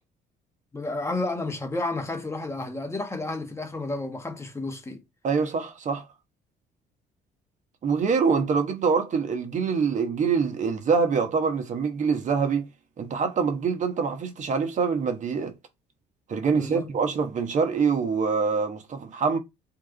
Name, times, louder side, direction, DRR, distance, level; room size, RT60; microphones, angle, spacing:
voice 1, 0.7-5.0 16.5-16.9, left 2 dB, 15° left, 1.2 m, -31 dB
voice 2, 5.2-6.1 7.8-12.7 13.0-15.5 16.3-19.4, right 5 dB, 45° right, 1.2 m, -25 dB
3.4 x 3.2 x 3.9 m
cardioid pair, 110°, 17 cm